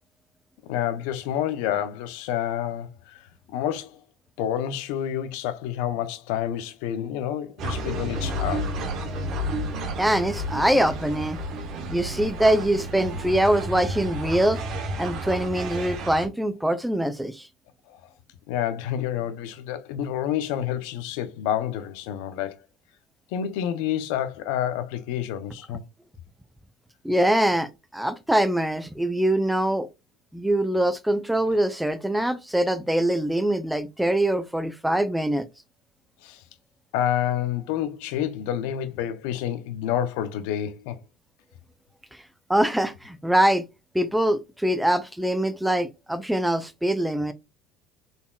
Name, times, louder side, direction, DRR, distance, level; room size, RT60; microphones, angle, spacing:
voice 1, 0.6-4.0 4.4-8.9 17.9-18.0 18.5-22.6 23.3-25.8 36.2-36.4 36.9-41.0, left 10 dB, 75° left, 0.6 m, -29 dB
sound 1, 7.6-16.3, right 1 dB, 55° right, 1.0 m, -31 dB
voice 2, 10.0-11.4 11.9-14.6 15.0-17.5 27.0-29.9 30.3-35.5 42.5-43.6 43.9-47.3, right 1 dB, 5° right, 0.6 m, -23 dB
4.1 x 3.5 x 2.3 m
hypercardioid pair, 80°, 0 cm